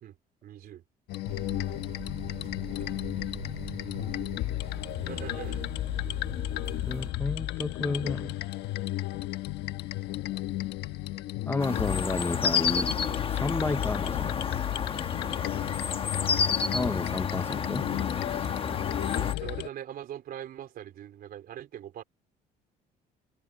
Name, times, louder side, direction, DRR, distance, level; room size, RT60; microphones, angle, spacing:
voice 1, 0.4-0.8 5.1-5.7 19.2-22.0, right 11 dB, 60° right, 3.9 m, -41 dB
sound 1, 1.1-19.7, left 16 dB, 85° left, 1.3 m, -33 dB
sound 2, 1.3-7.1, right 6 dB, 40° right, 4.4 m, -43 dB
voice 2, 6.9-8.4 11.5-12.9 13.3-14.4 16.7-17.9, left 3 dB, 15° left, 0.9 m, -31 dB
sound 3, 11.6-19.3, left 6 dB, 35° left, 1.2 m, -30 dB
cardioid pair, 110°, 17 cm